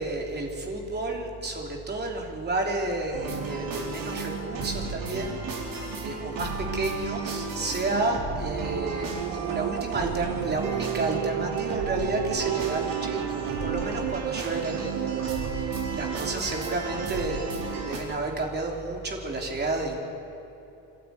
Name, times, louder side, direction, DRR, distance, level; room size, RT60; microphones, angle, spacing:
voice 1, 0.0-5.7 6.0-20.0, right 2 dB, 25° right, 1 dB, 3.3 m, -31 dB
sound 1, 3.1-18.0, right 4 dB, 55° right, 4.7 m, -34 dB
sound 2, 7.6-16.3, right 18 dB, 85° right, 0.6 m, -33 dB
sound 3, 13.1-18.2, equal, 10° left, 7.5 m, -52 dB
27.5 x 13.0 x 9.5 m, 2.9 s
cardioid pair, 155°, 42 cm